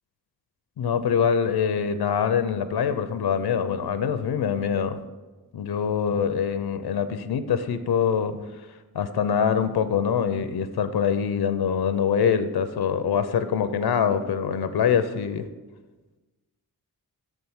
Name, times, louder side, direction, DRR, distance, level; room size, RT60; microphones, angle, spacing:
voice 1, 0.8-5.0 5.5-8.4 8.9-15.5, left 7 dB, 80° left, 11 dB, 0.5 m, -24 dB
6.3 x 4.6 x 5.5 m, 1.2 s
wide cardioid pair, 85°, 38 cm